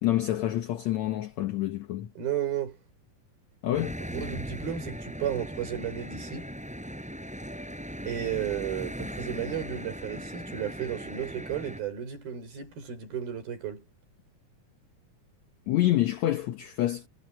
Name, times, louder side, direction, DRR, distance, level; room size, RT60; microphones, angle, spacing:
voice 1, 0.0-2.1 3.6-4.0 15.7-17.1, left 14 dB, 75° left, 1.7 m, -27 dB
voice 2, 2.2-2.8 4.0-6.5 8.1-13.8, right 9 dB, 75° right, 7.1 m, -33 dB
sound 1, 3.7-11.8, equal, ahead, 5.9 m, -38 dB
omnidirectional pair, 4.3 m